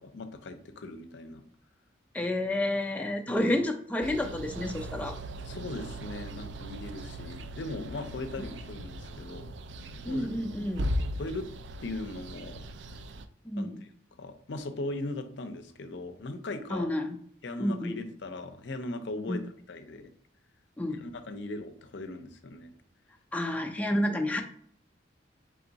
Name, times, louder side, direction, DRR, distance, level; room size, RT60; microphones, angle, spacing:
voice 1, 0.0-1.4 5.4-9.5 10.1-10.3 11.2-11.5 11.8-12.6 13.6-13.9 14.2-16.9 17.4-20.1 20.9-22.7, left 2 dB, 65° left, 8 dB, 0.5 m, -39 dB
voice 2, 2.1-5.1 10.0-10.9 13.5-13.8 16.7-17.2 17.6-18.0 19.3-19.4 20.8-21.0 23.3-24.4, left 1 dB, 10° left, 2 dB, 0.4 m, -30 dB
sound 1, 4.0-13.2, equal, 65° right, 0.4 m, -38 dB
3.5 x 3.5 x 4.0 m, 0.62 s
head